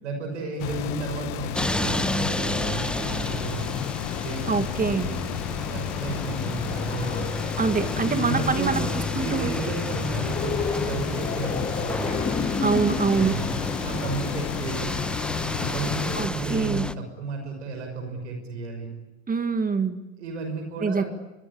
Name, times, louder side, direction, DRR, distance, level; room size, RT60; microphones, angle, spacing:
voice 1, 0.0-3.7 4.2-5.2 5.5-7.3 8.0-12.1 13.1-13.5 13.8-14.9 15.6-18.9 20.2-21.1, right 3 dB, 85° right, 4 dB, 5.9 m, -33 dB
sound 1, 0.6-16.3, left 15 dB, 65° left, 1.3 m, -33 dB
sound 2, 1.5-16.9, left 1 dB, 5° left, 1.1 m, -31 dB
voice 2, 4.5-5.1 7.6-8.9 9.2-9.6 12.6-13.4 16.2-16.9 19.3-20.0 20.8-21.0, right 5 dB, 25° right, 9 dB, 1.9 m, -24 dB
sound 3, 5.7-15.3, left 5 dB, 20° left, 1.9 m, -34 dB
24.5 x 23.0 x 9.7 m, 1.0 s
hypercardioid pair, 75°, 35 cm